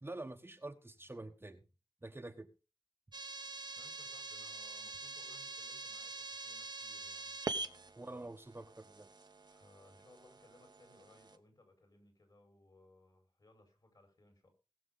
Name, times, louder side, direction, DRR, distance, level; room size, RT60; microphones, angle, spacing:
voice 1, 0.0-1.6 2.0-2.5 8.0-9.1, right 2 dB, 25° right, 5 dB, 1.2 m, -47 dB
sound 1, 3.1-11.4, right 3 dB, 55° right, 1.0 m, -45 dB
voice 2, 3.8-8.0 9.5-14.5, left 1 dB, 50° left, 5 dB, 5.3 m, -64 dB
20.0 x 7.0 x 3.9 m, 0.31 s
wide cardioid pair, 75°, 9 cm